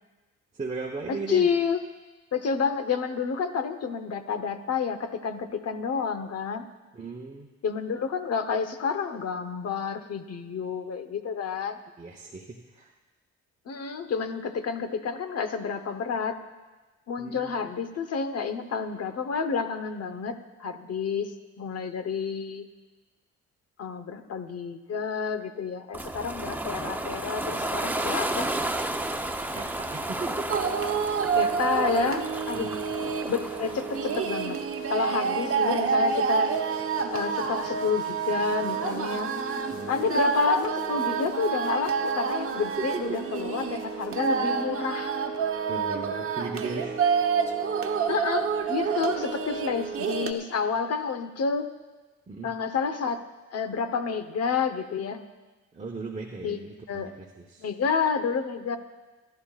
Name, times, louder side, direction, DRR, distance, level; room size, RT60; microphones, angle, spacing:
voice 1, 0.5-1.5 6.9-7.5 12.0-12.9 17.2-17.6 29.5-30.6 32.5-32.9 39.7-40.0 42.8-43.2 45.7-47.0 48.8-48.9 52.3-52.5 55.7-57.7, right 3 dB, 25° right, -2 dB, 1.2 m, -37 dB
voice 2, 1.1-1.8 2.3-6.7 7.6-11.8 13.7-16.4 17.1-22.7 23.8-28.6 31.3-32.7 33.3-34.6 34.9-36.5 37.1-39.3 39.9-45.1 48.1-51.7 52.4-53.2 53.5-55.2 56.4-56.6 56.9-57.1 57.6-58.8, left 5 dB, 55° left, 9 dB, 1.1 m, -29 dB
Ocean, 25.9-34.8, right 1 dB, 5° right, 0.8 m, -33 dB
sound 1, 30.5-44.8, left 2 dB, 75° left, 3.0 m, -51 dB
sound 2, 30.5-50.3, right 6 dB, 45° right, 1.1 m, -28 dB
25.5 x 12.0 x 2.5 m, 1.2 s
cardioid pair, 90°, 30 cm